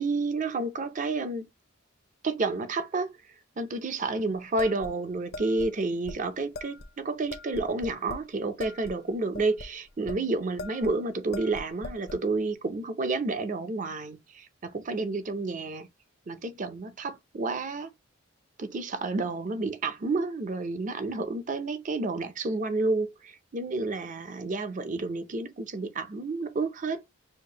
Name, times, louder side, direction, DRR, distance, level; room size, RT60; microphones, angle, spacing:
voice 1, 0.0-1.4 2.2-3.2 3.6-15.9 16.3-17.9 18.6-27.0, right 3 dB, 35° right, 0.5 m, -30 dB
sound 1, 4.6-5.7 6.1-6.2 6.5-6.9 7.3-8.3 8.6-10.2 10.6-11.0 11.3-12.2, left 2 dB, 50° left, 0.6 m, -41 dB
6.5 x 2.5 x 2.8 m
head